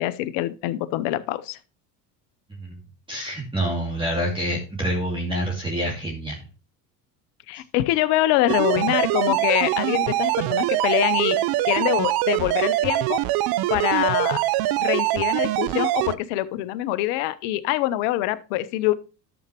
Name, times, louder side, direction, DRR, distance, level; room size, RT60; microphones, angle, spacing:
voice 1, 0.0-1.6 7.5-11.4 11.7-13.2 13.7-14.4 14.8-18.9, left 15 dB, 65° left, 14 dB, 0.9 m, -24 dB
voice 2, 3.1-6.4, equal, 10° right, -2 dB, 2.5 m, -27 dB
sound 1, 8.5-16.1, right 15 dB, 50° right, 0.6 m, -23 dB
12.0 x 7.1 x 3.0 m, 0.33 s
hypercardioid pair, 80°, 48 cm